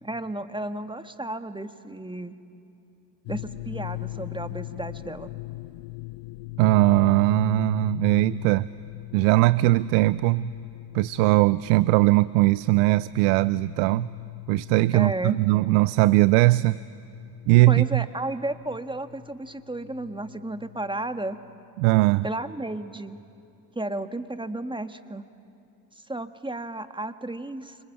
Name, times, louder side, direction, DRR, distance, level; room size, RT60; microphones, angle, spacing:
voice 1, 0.0-2.3 3.3-5.3 14.9-15.4 17.7-21.4 22.2-23.2 23.7-25.3 26.1-27.8, right 2 dB, 10° right, 9 dB, 1.6 m, -33 dB
sound 1, 3.3-21.5, left 20 dB, 65° left, 0.8 m, -39 dB
voice 2, 6.6-8.7 9.1-10.5 10.9-14.1 14.5-16.8 17.5-18.0 21.8-22.2, right 20 dB, 75° right, 19 dB, 0.5 m, -20 dB
28.5 x 26.0 x 7.9 m, 2.6 s
hypercardioid pair, 45°, 47 cm